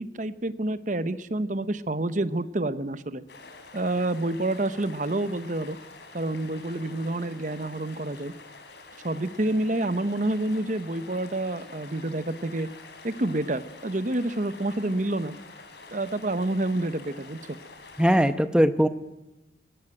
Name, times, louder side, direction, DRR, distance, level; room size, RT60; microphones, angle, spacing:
voice 1, 0.0-3.2 3.7-5.8 6.1-8.3 9.0-12.7 13.0-15.3 15.9-17.6, right 2 dB, 40° right, 13 dB, 0.9 m, -28 dB
sound 1, 3.3-18.3, left 3 dB, 65° left, 3.9 m, -47 dB
voice 2, 18.0-18.9, equal, 5° right, 11 dB, 0.9 m, -20 dB
20.0 x 17.0 x 9.0 m, 0.99 s
head